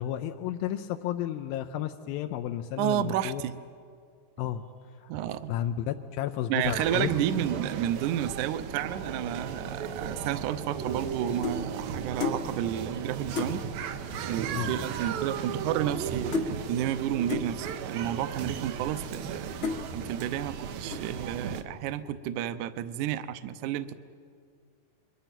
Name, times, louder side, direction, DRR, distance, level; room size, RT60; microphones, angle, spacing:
voice 1, 0.0-3.4 4.4-4.7 5.0-5.1 5.5-7.1 14.5-14.7, left 11 dB, 85° left, 7 dB, 2.5 m, -32 dB
voice 2, 2.8-3.6 5.1-5.5 6.5-13.6 14.2-19.5 19.9-23.9, right 11 dB, 75° right, 12 dB, 2.0 m, -31 dB
sound 1, 6.6-21.6, right 7 dB, 90° right, 2.9 m, -36 dB
sound 2, 8.8-14.2, left 1 dB, 25° left, 0.8 m, -47 dB
sound 3, 10.5-11.7 12.2-12.5 12.9-13.0 13.3-13.6 14.5-14.6 14.8-15.1 15.4-16.1 16.3-16.6 17.3-17.5 18.2-18.3 18.9-19.3 19.6-19.9 20.4-20.6 20.9-21.3, left 5 dB, 55° left, 0.7 m, -33 dB
29.0 x 23.0 x 5.9 m, 2.2 s
omnidirectional pair, 4.1 m